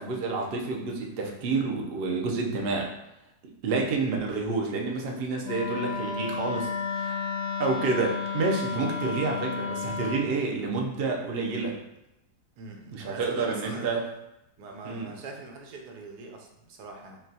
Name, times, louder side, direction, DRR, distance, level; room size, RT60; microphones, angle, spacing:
voice 1, 0.0-2.9 3.6-7.1 7.6-11.8 12.9-14.0 14.8-15.1, right 3 dB, 55° right, 0 dB, 0.6 m, -29 dB
Wind instrument woodwind instrument, 5.4-10.3, left 5 dB, 85° left, 1.1 m, -32 dB
voice 2, 12.6-14.0 14.6-17.2, right 3 dB, 85° right, 1 dB, 1.2 m, -43 dB
5.9 x 2.3 x 2.7 m, 0.90 s
omnidirectional pair, 1.7 m